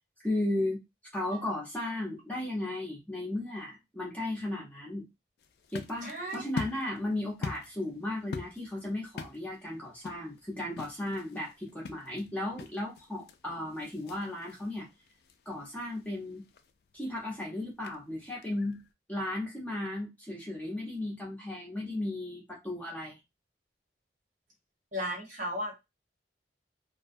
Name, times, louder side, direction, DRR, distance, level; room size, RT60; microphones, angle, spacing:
voice 1, 0.2-0.8 1.1-5.1 5.7-14.9 15.5-16.4 16.9-18.8 19.1-23.2, left 1 dB, 10° left, -4 dB, 0.6 m, -35 dB
sound 1, 5.4-18.9, left 4 dB, 60° left, 0.3 m, -45 dB
voice 2, 6.0-6.4 24.9-25.7, equal, 45° right, -3 dB, 1.0 m, -35 dB
2.4 x 2.2 x 2.6 m, 0.22 s
head